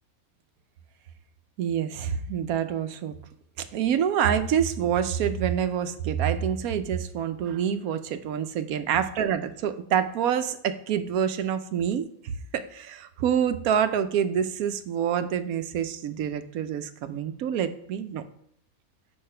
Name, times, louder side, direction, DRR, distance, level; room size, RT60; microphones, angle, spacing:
voice 1, 1.6-3.1 3.6-18.2, right 8 dB, 85° right, 11 dB, 1.1 m, -27 dB
6.6 x 5.1 x 5.5 m, 0.68 s
omnidirectional pair, 1.5 m